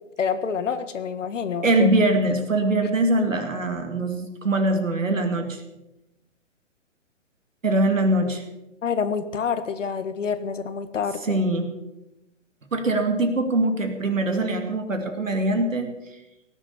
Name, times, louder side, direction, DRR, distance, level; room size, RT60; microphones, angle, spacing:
voice 1, 0.2-1.9 8.8-11.4, left 6 dB, 75° left, 11 dB, 1.7 m, -27 dB
voice 2, 1.6-5.6 7.6-8.4 11.2-11.7 12.7-15.9, right 2 dB, 90° right, 5 dB, 2.6 m, -22 dB
18.0 x 7.6 x 7.1 m, 0.95 s
hypercardioid pair, 135°, 37 cm